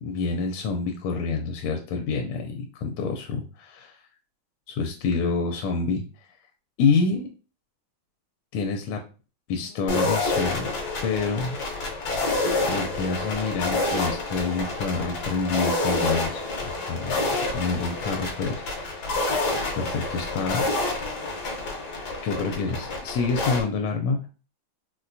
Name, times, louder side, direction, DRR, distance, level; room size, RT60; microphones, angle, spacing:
voice 1, 0.0-4.0 4.7-6.0 6.8-7.3 8.5-9.1 9.5-10.7 11.0-11.6 12.7-17.2 17.5-19.3 19.8-20.6 22.2-24.3, left 4 dB, 85° left, 3 dB, 1.4 m, -27 dB
sound 1, 9.9-23.6, left 2 dB, 60° left, 1.2 m, -28 dB
4.1 x 2.2 x 2.5 m, 0.35 s
omnidirectional pair, 2.3 m